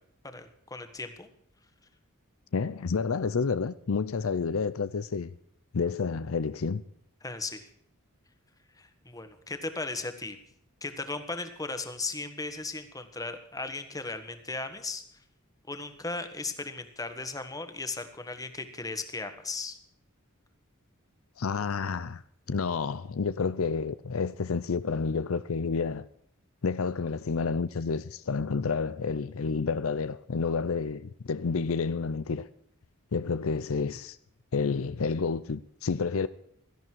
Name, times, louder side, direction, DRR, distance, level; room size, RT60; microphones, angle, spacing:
voice 1, 0.2-1.3 7.2-7.7 8.8-10.4 10.8-15.0 15.7-19.8, left 3 dB, 15° left, 1.6 m, -36 dB
voice 2, 2.5-5.3 5.7-6.8 21.4-22.2 22.5-26.1 26.6-32.5 33.1-34.2 34.5-36.3, left 5 dB, 70° left, 0.6 m, -29 dB
17.0 x 13.5 x 4.6 m
head